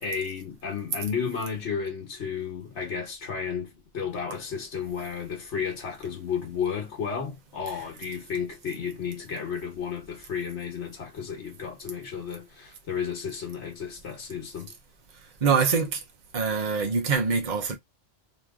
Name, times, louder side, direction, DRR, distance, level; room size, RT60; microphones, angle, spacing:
voice 1, 0.0-14.7, left 6 dB, 80° left, 1.3 m, -33 dB
voice 2, 15.4-16.0 16.3-17.8, right 5 dB, 45° right, 0.9 m, -24 dB
3.1 x 2.8 x 3.5 m
omnidirectional pair, 1.1 m